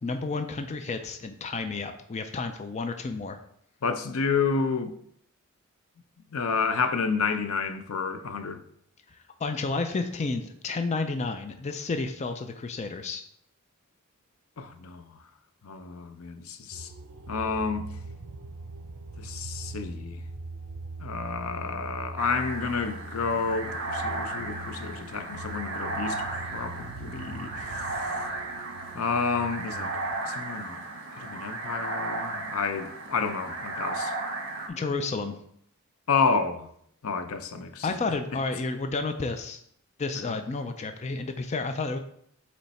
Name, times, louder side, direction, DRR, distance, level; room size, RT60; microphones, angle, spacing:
voice 1, 0.0-3.4 9.4-13.2 34.7-35.4 37.8-39.6 40.0-42.0, left 3 dB, 35° left, 0.4 m, -31 dB
voice 2, 3.8-4.9 6.3-8.6 14.6-15.1 15.6-16.9 17.3-17.9 19.2-20.2 21.0-27.8 28.9-29.9 30.2-30.8 31.1-34.1 36.1-36.7 37.0-37.9 40.2-40.3, left 5 dB, 80° left, 0.6 m, -30 dB
sound 1, 16.7-30.1, right 2 dB, 80° right, 0.6 m, -42 dB
sound 2, 22.2-34.7, right 2 dB, 60° right, 1.3 m, -35 dB
7.0 x 3.2 x 4.2 m
head